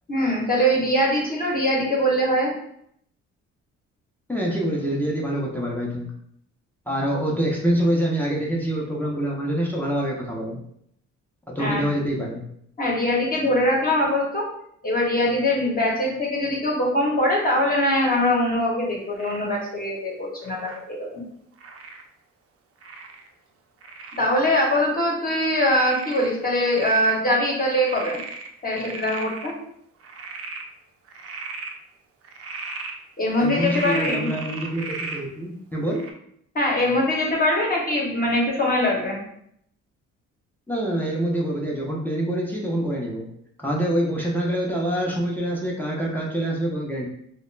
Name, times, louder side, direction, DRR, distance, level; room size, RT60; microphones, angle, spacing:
voice 1, 0.1-2.5 11.6-11.9 12.8-14.4 14.8-21.2 24.2-28.2 28.6-29.5 33.2-34.3 36.5-39.2, left 1 dB, 30° left, -3 dB, 0.8 m, -22 dB
voice 2, 4.3-6.1 6.9-10.6 11.5-12.4 33.4-36.0 40.7-43.2 43.6-47.1, right 1 dB, 5° left, -3 dB, 0.5 m, -25 dB
Frog, 19.2-19.5 20.4-20.8 21.6-22.0 22.8-23.3 23.8-24.3 24.8-24.9 25.5-27.2 27.5-29.5 30.0-30.7 31.1-31.7 32.2-32.9 33.4-35.2 35.9-36.1, right 3 dB, 50° right, 0.5 m, -36 dB
2.3 x 2.0 x 3.1 m, 0.70 s
cardioid pair, 90°, 30 cm